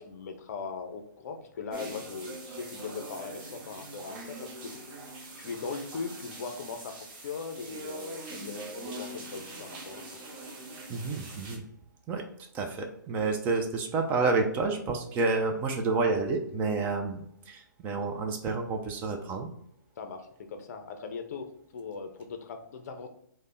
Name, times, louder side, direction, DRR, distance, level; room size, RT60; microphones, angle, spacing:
voice 1, 0.0-5.0 5.4-10.2 20.0-23.1, left 5 dB, 50° left, 6 dB, 0.5 m, -40 dB
sound 1, 1.7-11.6, right 2 dB, 35° right, 0.8 m, -43 dB
voice 2, 10.9-11.6 12.1-12.3 12.5-19.5, right 3 dB, 15° right, 3 dB, 0.4 m, -29 dB
3.3 x 2.1 x 3.8 m, 0.70 s
hypercardioid pair, 135°, 11 cm